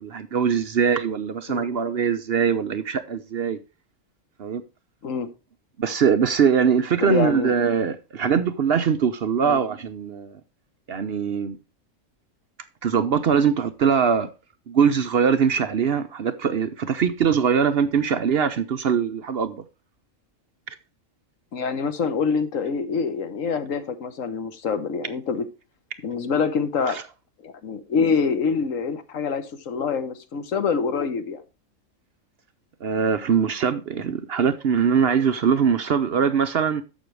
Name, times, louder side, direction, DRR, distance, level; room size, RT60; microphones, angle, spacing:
voice 1, 0.0-3.6 4.4-4.6 5.8-10.4 10.9-11.6 12.8-14.3 14.7-19.6 26.9-27.0 32.8-36.8, right 7 dB, 55° right, 0.8 m, -22 dB
voice 2, 7.0-7.5 9.4-9.6 21.5-25.5 26.0-27.0 27.4-31.4, left 5 dB, 75° left, 1.4 m, -25 dB
11.5 x 7.5 x 3.1 m
omnidirectional pair, 1.4 m